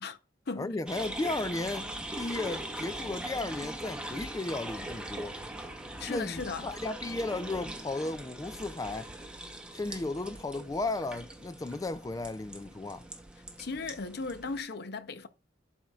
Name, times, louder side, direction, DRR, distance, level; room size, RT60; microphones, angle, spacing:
voice 1, 0.6-5.4 6.1-9.1 9.7-13.0, left 2 dB, 20° left, 0.3 m, -35 dB
sound 1, 0.9-14.6, right 1 dB, 5° right, 0.8 m, -41 dB
voice 2, 6.0-6.7 13.6-15.3, left 4 dB, 60° left, 0.7 m, -36 dB
11.5 x 4.3 x 2.4 m
head